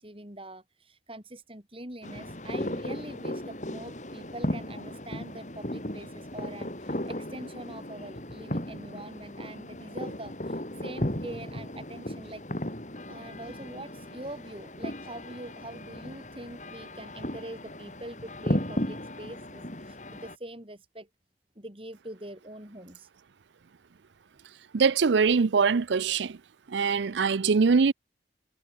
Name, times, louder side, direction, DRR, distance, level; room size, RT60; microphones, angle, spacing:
voice 1, 0.0-12.4 13.1-21.1 21.5-23.1, right 1 dB, 30° right, 4.8 m, -43 dB
sound 1, 2.0-20.4, left 1 dB, 40° left, 4.0 m, -36 dB
voice 2, 24.7-26.4 26.7-27.9, right 5 dB, 75° right, 0.5 m, -23 dB
head